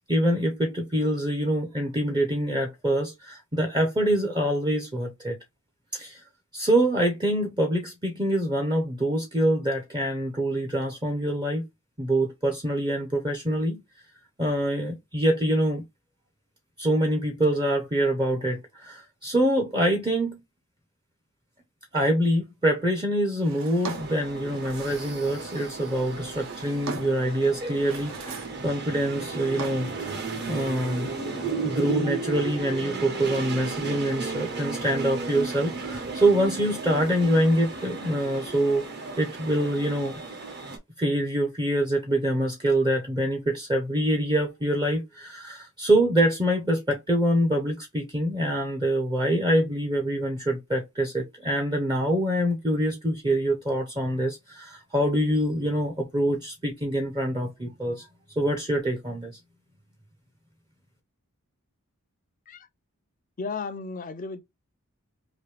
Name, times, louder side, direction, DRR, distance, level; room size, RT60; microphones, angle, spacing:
voice 1, 0.1-5.4 5.9-6.2 6.5-11.7 12.0-13.8 14.4-15.8 16.8-20.4 21.9-29.9 30.5-31.1 31.6-38.8 39.2-40.2 41.0-58.1 58.4-59.4, right 1 dB, 20° right, 0.6 m, -25 dB
Drawer open or close, 23.4-25.2 26.0-27.3 27.7-28.6 28.9-30.1, right 4 dB, 65° right, 0.8 m, -40 dB
sound 1, 23.8-40.8, right 4 dB, 50° right, 1.1 m, -34 dB
voice 2, 63.4-64.4, left 4 dB, 40° left, 0.5 m, -34 dB
3.0 x 2.6 x 3.3 m
head